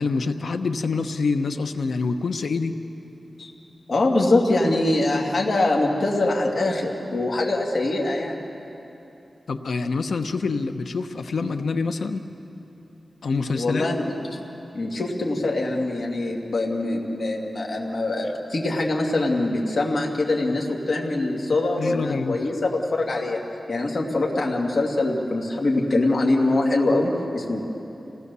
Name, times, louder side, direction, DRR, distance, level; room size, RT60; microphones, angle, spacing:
voice 1, 0.0-2.7 9.5-12.3 13.2-13.9 21.8-22.4, left 4 dB, 85° left, 8 dB, 1.0 m, -26 dB
voice 2, 3.9-8.4 13.6-14.4 14.7-23.4 23.7-27.6, left 2 dB, 65° left, -1 dB, 2.3 m, -23 dB
28.0 x 18.0 x 6.9 m, 2.9 s
wide cardioid pair, 85°, 0 cm